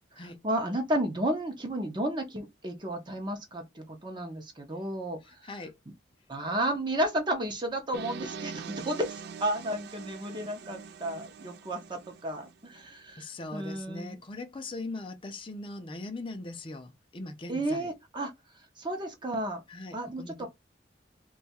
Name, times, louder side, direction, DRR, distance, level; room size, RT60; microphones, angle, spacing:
voice 1, 0.1-5.5 6.3-14.2 17.5-19.6 19.9-20.5, right 1 dB, 25° right, 0.7 m, -33 dB
sound 1, 7.9-12.9, right 5 dB, 65° right, 0.4 m, -43 dB
voice 2, 13.2-17.9 19.7-20.3, left 2 dB, 30° left, 0.5 m, -40 dB
2.7 x 2.3 x 4.1 m
head